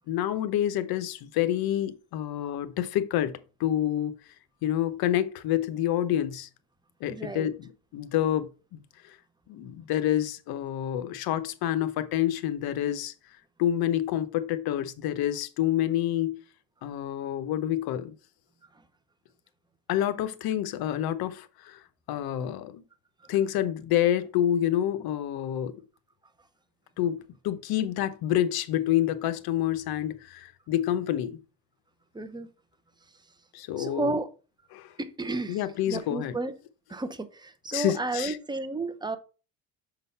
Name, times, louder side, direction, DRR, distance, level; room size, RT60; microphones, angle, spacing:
voice 1, 0.1-4.1 4.6-6.5 7.0-8.8 9.5-13.1 13.6-16.4 16.8-18.1 19.9-21.8 22.1-22.8 23.3-25.8 27.0-31.4 33.5-34.1 34.7-34.9 35.5-36.4 37.7-38.4, left 11 dB, 70° left, 0.9 m, -28 dB
voice 2, 7.1-7.5 32.1-32.5 33.8-34.3 35.0-36.5 36.9-39.2, right 2 dB, 10° right, 0.8 m, -32 dB
6.3 x 3.9 x 5.6 m
cardioid pair, 105°, 39 cm